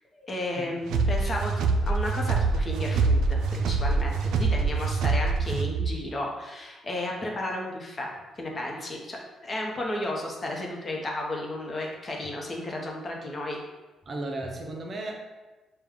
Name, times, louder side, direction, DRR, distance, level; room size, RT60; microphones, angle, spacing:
voice 1, 0.1-8.1 8.4-13.6, left 1 dB, 35° left, -1 dB, 0.8 m, -33 dB
sound 1, 0.9-5.9, right 4 dB, 85° right, 0.3 m, -25 dB
voice 2, 14.1-15.2, right 2 dB, 40° right, 2 dB, 0.6 m, -35 dB
4.9 x 2.3 x 3.5 m, 1.2 s
cardioid pair, 90°, 0 cm